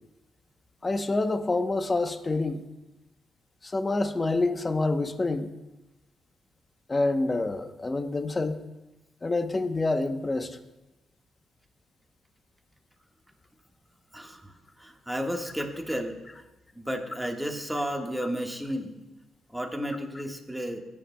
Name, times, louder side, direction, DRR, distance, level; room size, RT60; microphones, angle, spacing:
voice 1, 0.8-2.6 3.6-5.5 6.9-8.6 9.2-10.6, left 2 dB, 25° left, 9 dB, 0.8 m, -27 dB
voice 2, 14.1-16.2 16.7-19.0 19.5-20.8, equal, 5° right, 2 dB, 1.5 m, -33 dB
18.0 x 9.5 x 2.2 m, 1.0 s
cardioid pair, 80°, 0 cm